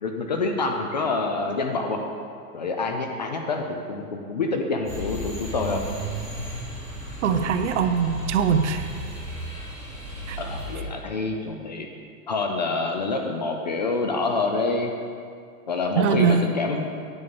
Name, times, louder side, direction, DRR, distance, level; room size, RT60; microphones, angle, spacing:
voice 1, 0.0-2.0 2.5-5.8 10.4-11.9 12.3-14.9 15.7-16.8, left 3 dB, 30° left, 3 dB, 0.4 m, -27 dB
sound 1, 4.9-10.8, equal, 5° left, 2.0 m, -34 dB
voice 2, 7.2-8.9 10.3-10.4 16.0-16.4, right 7 dB, 50° right, 8 dB, 0.7 m, -22 dB
9.6 x 5.3 x 6.9 m, 2.3 s
supercardioid pair, 170°, 45 cm